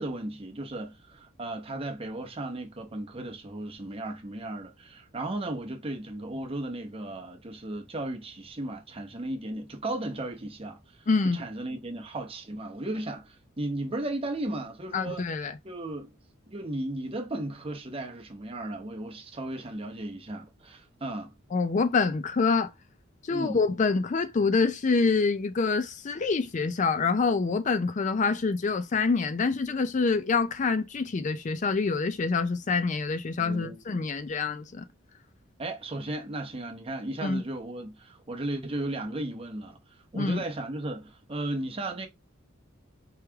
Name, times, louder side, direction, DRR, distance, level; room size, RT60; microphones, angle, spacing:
voice 1, 0.0-15.2 15.6-16.2 16.5-21.3 23.3-23.6 33.4-33.8 35.6-42.1, right 1 dB, 30° right, 0.9 m, -35 dB
voice 2, 11.1-11.4 14.9-15.5 21.5-22.7 23.2-34.9 37.2-37.4 40.1-40.4, left 4 dB, 35° left, 0.4 m, -26 dB
4.7 x 3.1 x 3.4 m
head